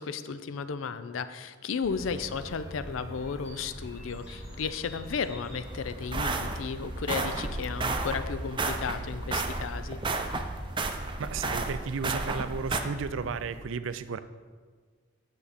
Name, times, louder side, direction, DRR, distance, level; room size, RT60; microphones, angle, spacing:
voice 1, 0.0-10.0, left 5 dB, 80° left, 13 dB, 0.4 m, -34 dB
sound 1, 1.8-13.6, equal, 55° left, 2.2 m, -43 dB
sound 2, 5.6-12.8, right 3 dB, 25° right, 0.5 m, -33 dB
voice 2, 11.2-14.2, right 5 dB, 75° right, 13 dB, 0.4 m, -33 dB
8.5 x 6.7 x 4.1 m, 1.5 s
head